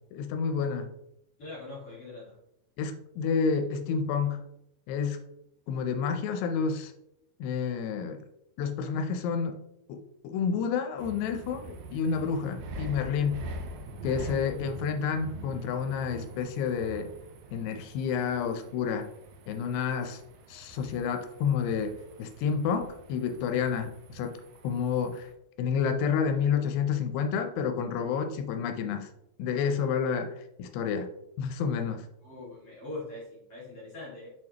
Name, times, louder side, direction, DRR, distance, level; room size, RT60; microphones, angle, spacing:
voice 1, 0.1-0.9 2.8-4.4 4.9-5.2 5.7-6.9 7.4-8.2 8.6-9.6 9.9-13.5 14.0-17.1 17.5-19.1 19.5-20.2 20.5-24.3 24.6-25.3 25.6-29.1 29.4-31.1 31.4-32.1, left 6 dB, 85° left, 7 dB, 2.7 m, -29 dB
voice 2, 1.4-2.3 32.2-34.3, left 2 dB, 40° left, -7 dB, 2.4 m, -42 dB
sound 1, 11.0-25.3, right 1 dB, 85° right, 3.0 m, -44 dB
6.4 x 6.4 x 2.9 m, 0.80 s
omnidirectional pair, 4.8 m